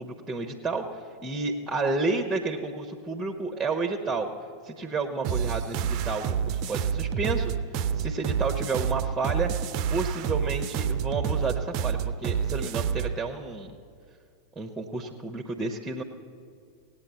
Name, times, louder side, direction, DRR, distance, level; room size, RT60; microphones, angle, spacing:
voice 1, 0.0-4.3 4.6-7.5 8.0-9.5 9.9-13.7 14.6-16.0, right 3 dB, 10° right, 4 dB, 1.0 m, -31 dB
sound 1, 5.2-13.2, right 7 dB, 40° right, 0.5 m, -28 dB
17.5 x 8.8 x 8.1 m, 2.3 s
figure-of-eight pair, 90°, 0 cm